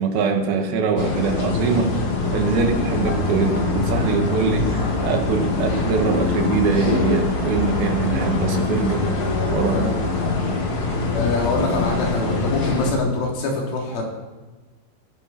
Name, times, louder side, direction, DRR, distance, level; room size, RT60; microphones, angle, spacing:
voice 1, 0.0-2.0 2.3-9.1 9.5-10.0, right 5 dB, 60° right, 3 dB, 3.2 m, -23 dB
sound 1, 1.0-12.9, left 3 dB, 45° left, 1.6 m, -23 dB
voice 2, 11.1-14.0, left 3 dB, 80° left, -1 dB, 6.0 m, -24 dB
17.0 x 17.0 x 4.4 m, 1.2 s
omnidirectional pair, 5.6 m